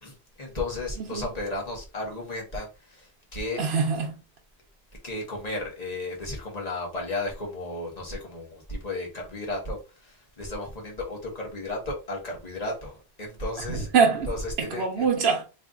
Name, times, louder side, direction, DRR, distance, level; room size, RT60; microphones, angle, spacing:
voice 1, 0.0-2.7 3.3-3.6 5.0-9.8 10.4-12.9 13.2-13.9 14.2-15.1, left 2 dB, 40° left, 1.5 m, -33 dB
voice 2, 3.6-4.1 13.7-14.3 14.6-15.4, right 5 dB, 80° right, 1.0 m, -24 dB
3.4 x 2.6 x 3.6 m
omnidirectional pair, 1.0 m